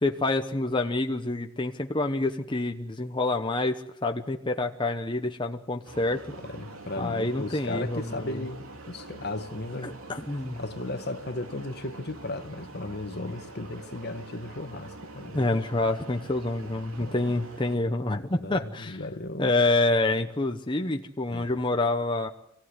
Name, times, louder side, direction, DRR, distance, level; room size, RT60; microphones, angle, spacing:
voice 1, 0.0-6.2 7.0-8.4 9.8-10.6 15.3-19.0 19.4-22.3, left 2 dB, 20° left, 1.0 m, -27 dB
sound 1, 5.8-17.8, right 2 dB, 80° right, 3.0 m, -45 dB
voice 2, 6.4-10.0 10.6-15.5 17.0-17.2 18.4-19.6 21.3-21.5, left 2 dB, 50° left, 1.5 m, -36 dB
26.5 x 16.5 x 9.8 m
head